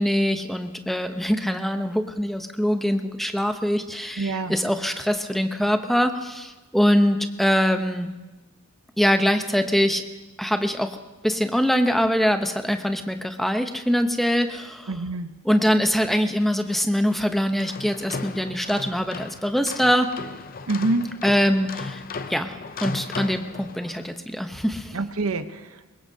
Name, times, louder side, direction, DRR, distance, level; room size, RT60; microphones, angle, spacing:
voice 1, 0.0-8.1 9.0-10.0 10.4-11.0 11.2-14.9 15.4-20.1 21.2-22.0 22.3-22.5 22.8-24.9, equal, ahead, 6 dB, 0.8 m, -23 dB
voice 2, 4.2-4.6 14.9-15.3 20.7-21.1 24.9-25.9, right 2 dB, 70° right, 9 dB, 0.9 m, -26 dB
sound 1, 17.4-24.1, left 4 dB, 40° left, 0.6 m, -36 dB
23.0 x 21.0 x 2.8 m, 1.1 s
head